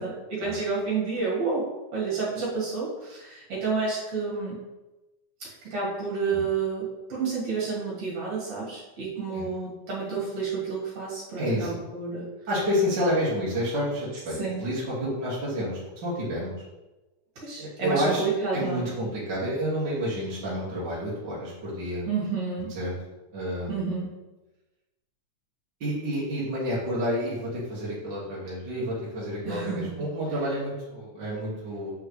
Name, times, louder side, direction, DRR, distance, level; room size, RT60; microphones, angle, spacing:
voice 1, 0.0-4.6 5.4-12.2 14.4-14.7 17.4-18.9 22.1-22.7 23.7-24.1 29.4-30.1, right 4 dB, 60° right, -7 dB, 3.1 m, -30 dB
voice 2, 11.4-11.8 12.5-16.5 17.6-18.2 18.5-22.1 22.7-22.9 23.3-24.0 25.8-31.9, equal, 40° right, -8 dB, 2.2 m, -29 dB
8.0 x 4.6 x 3.2 m, 1.1 s
omnidirectional pair, 3.6 m